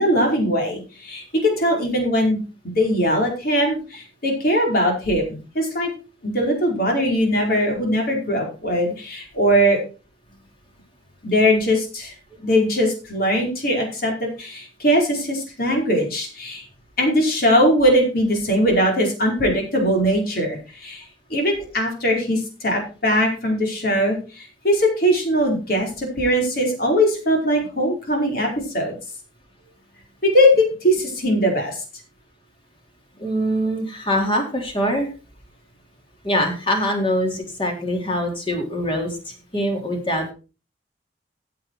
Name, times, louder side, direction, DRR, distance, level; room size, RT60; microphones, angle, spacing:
voice 1, 0.0-2.4 2.7-5.9 6.2-9.8 11.2-12.1 12.4-16.6 17.0-21.0 21.3-28.9 30.2-31.8, equal, 55° left, 0 dB, 4.9 m, -20 dB
voice 2, 33.2-35.1 36.2-40.3, equal, 30° left, 2 dB, 3.6 m, -23 dB
15.5 x 6.9 x 4.6 m, 0.34 s
head